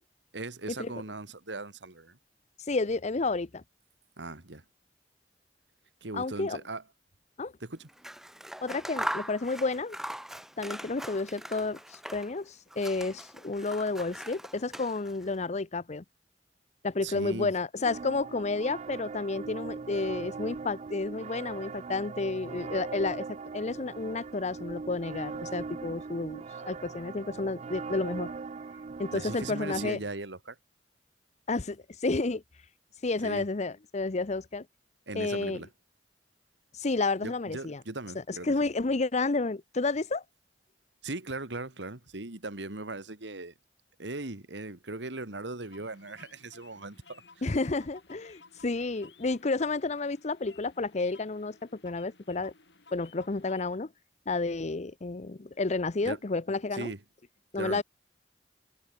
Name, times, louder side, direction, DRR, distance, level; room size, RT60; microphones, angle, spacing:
voice 1, 0.3-2.2 4.2-4.6 6.0-6.8 7.6-7.9 17.0-17.5 29.1-30.6 33.2-33.4 35.1-35.7 37.2-38.5 41.0-43.5 44.0-47.2 56.0-56.2 56.7-57.0 57.6-57.8, right 2 dB, 85° right, 2.4 m, -39 dB
voice 2, 2.7-3.6 6.1-6.6 7.4-7.5 8.6-10.0 10.6-11.8 12.1-16.0 16.8-28.3 29.0-30.0 31.5-32.4 33.0-34.7 35.1-35.6 36.7-37.8 38.3-40.2 47.4-51.6 51.8-52.5 52.9-53.9 54.3-56.9 57.5-57.8, left 3 dB, 40° left, 0.7 m, -31 dB
Scissors, 7.9-12.4 12.7-15.3, equal, ahead, 1.2 m, -40 dB
sound 1, 17.8-29.9, right 4 dB, 40° right, 0.4 m, -40 dB
sound 2, 45.6-53.8, left 4 dB, 80° left, 5.6 m, -57 dB
head